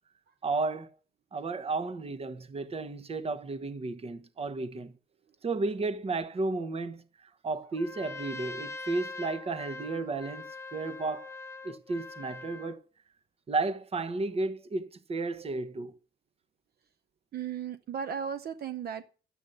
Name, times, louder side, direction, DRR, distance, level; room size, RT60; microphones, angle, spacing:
voice 1, 0.4-0.9 1.3-4.9 5.4-11.3 11.6-12.8 13.5-15.9, right 3 dB, 35° right, 1.2 m, -33 dB
Trumpet, 7.7-12.8, left 3 dB, 15° left, 1.0 m, -42 dB
voice 2, 17.3-19.1, right 8 dB, 65° right, 0.8 m, -35 dB
12.0 x 8.3 x 6.7 m
wide cardioid pair, 155°, 18 cm